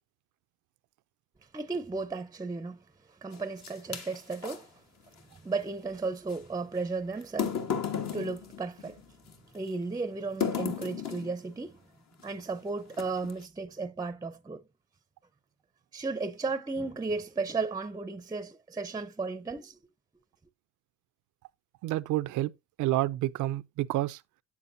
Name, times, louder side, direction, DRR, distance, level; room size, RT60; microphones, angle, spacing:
voice 1, 1.5-2.8 3.2-4.7 5.4-7.6 8.1-9.0 9.5-11.8 12.2-14.6 15.9-19.8, right 3 dB, 10° right, 0.5 m, -34 dB
sound 1, 3.3-4.6 6.3-6.4 7.2-9.4 10.4-11.4 12.2-12.4 12.9-13.4, left 7 dB, 60° left, 1.4 m, -34 dB
voice 2, 21.8-22.5 22.8-24.2, right 16 dB, 80° right, 0.5 m, -29 dB
8.1 x 7.1 x 2.6 m
cardioid pair, 90°, 30 cm